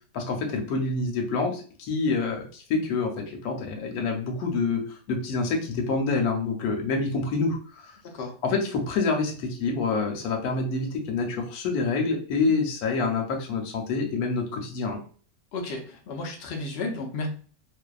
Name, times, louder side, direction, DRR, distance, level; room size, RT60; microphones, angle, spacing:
voice 1, 0.1-7.6 8.4-15.0, left 4 dB, 90° left, 2 dB, 1.1 m, -27 dB
voice 2, 15.5-17.3, left 3 dB, 60° left, 2 dB, 0.6 m, -33 dB
2.6 x 2.2 x 2.3 m, 0.41 s
omnidirectional pair, 1.5 m